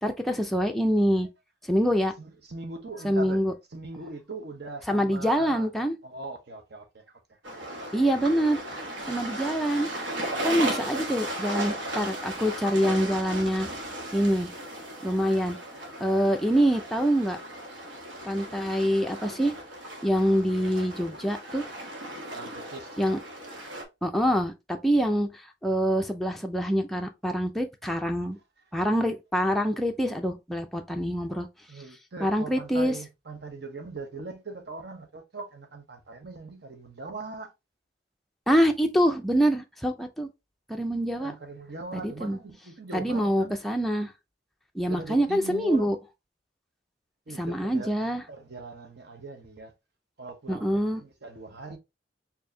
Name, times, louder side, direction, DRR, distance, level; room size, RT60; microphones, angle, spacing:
voice 1, 0.0-1.3 1.7-2.1 3.0-3.5 4.9-6.0 7.9-8.6 9.1-9.9 10.4-13.7 14.1-14.5 15.0-15.6 16.0-17.4 18.2-19.5 20.0-21.7 23.0-23.2 24.0-25.3 25.6-28.4 28.7-31.5 32.2-33.0 38.5-40.3 40.7-41.3 41.9-42.4 42.9-44.1 44.7-46.0 47.3-48.2 50.5-51.0, equal, ahead, 0.4 m, -25 dB
voice 2, 2.2-3.4 3.7-5.7 6.0-7.4 7.7-7.9 10.3-11.1 22.3-23.0 31.7-37.5 41.2-43.6 44.9-46.0 47.3-47.9 48.3-49.7 50.2-51.8, right 3 dB, 60° right, 1.0 m, -40 dB
sound 1, 7.4-23.8, right 1 dB, 80° right, 1.2 m, -36 dB
4.4 x 2.8 x 2.6 m
head